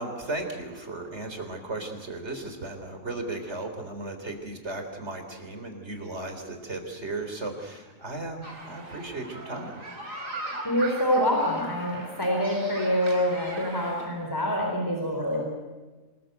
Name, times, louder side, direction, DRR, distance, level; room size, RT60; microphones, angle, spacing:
voice 1, 0.0-9.8, right 2 dB, 50° right, 5 dB, 4.1 m, -35 dB
sound 1, 8.4-14.1, right 2 dB, 70° right, 3.9 m, -40 dB
voice 2, 10.6-15.4, equal, 15° left, 1 dB, 4.2 m, -26 dB
26.5 x 20.5 x 8.1 m, 1.3 s
omnidirectional pair, 1.4 m